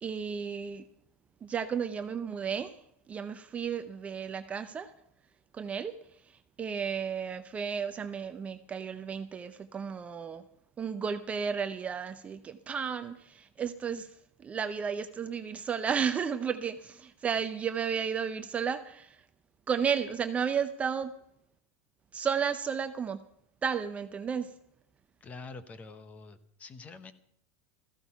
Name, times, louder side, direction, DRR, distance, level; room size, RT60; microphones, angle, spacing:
voice 1, 0.0-0.9 1.4-2.8 3.1-4.9 5.5-5.9 6.2-10.4 10.8-19.2 19.7-21.1 22.1-23.2 23.6-24.5, right 7 dB, 15° right, 9 dB, 0.6 m, -33 dB
voice 2, 25.2-27.1, left 3 dB, 20° left, 13 dB, 0.9 m, -46 dB
15.5 x 14.5 x 5.7 m, 0.74 s
supercardioid pair, 160°, 8 cm